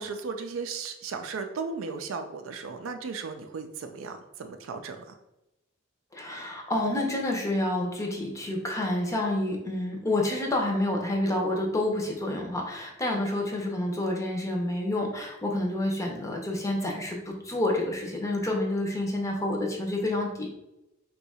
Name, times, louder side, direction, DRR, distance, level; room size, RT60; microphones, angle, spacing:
voice 1, 0.0-5.1, right 4 dB, 80° right, 6 dB, 0.4 m, -36 dB
voice 2, 6.1-20.5, left 1 dB, 15° left, 0 dB, 0.6 m, -28 dB
2.7 x 2.3 x 4.1 m, 0.92 s
head